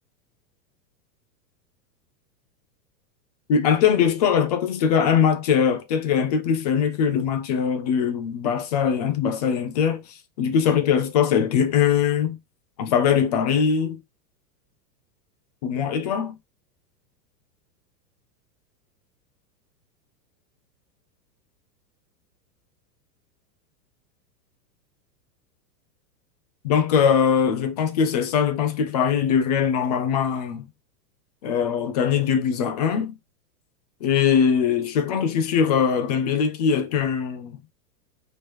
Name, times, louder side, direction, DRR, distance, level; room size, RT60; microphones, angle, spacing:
voice 1, 3.5-12.4 12.8-14.0 15.6-16.4 26.6-30.6 31.4-33.1 34.0-37.6, left 7 dB, 30° left, 0.3 m, -21 dB
4.4 x 3.2 x 3.0 m
supercardioid pair, 145°, 49 cm